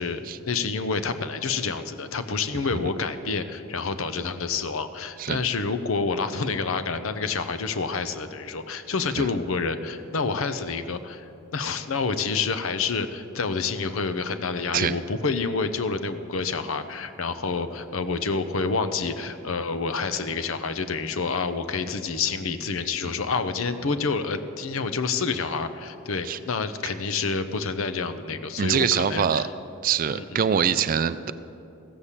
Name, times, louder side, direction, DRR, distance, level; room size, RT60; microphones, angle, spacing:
voice 1, 0.0-29.5 30.1-30.4, left 4 dB, 70° left, 10 dB, 0.7 m, -28 dB
voice 2, 28.6-29.5 29.8-31.3, right 7 dB, 40° right, 13 dB, 0.3 m, -24 dB
15.0 x 7.2 x 8.3 m, 2.7 s
head